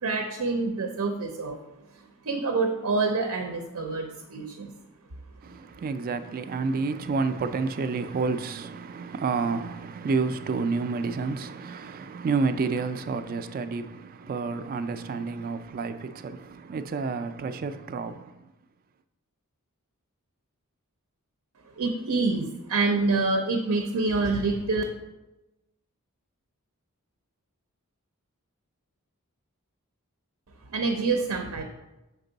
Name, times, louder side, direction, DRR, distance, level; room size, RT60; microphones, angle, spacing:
voice 1, 0.0-1.6 2.2-4.7 21.8-24.8 30.7-31.6, right 3 dB, 80° right, 0.6 m, -26 dB
voice 2, 5.4-18.5, right 4 dB, 40° right, 0.3 m, -30 dB
6.0 x 4.5 x 3.9 m
head